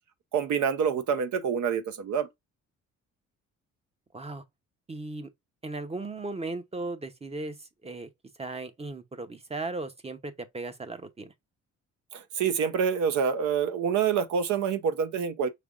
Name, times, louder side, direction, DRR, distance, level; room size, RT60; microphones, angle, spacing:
voice 1, 0.3-2.3 12.1-15.5, right 7 dB, 70° right, 0.7 m, -27 dB
voice 2, 4.9-5.3 5.6-8.1 8.4-11.3, right 3 dB, 20° right, 0.7 m, -37 dB
5.2 x 3.3 x 2.4 m
cardioid pair, 90°, 30 cm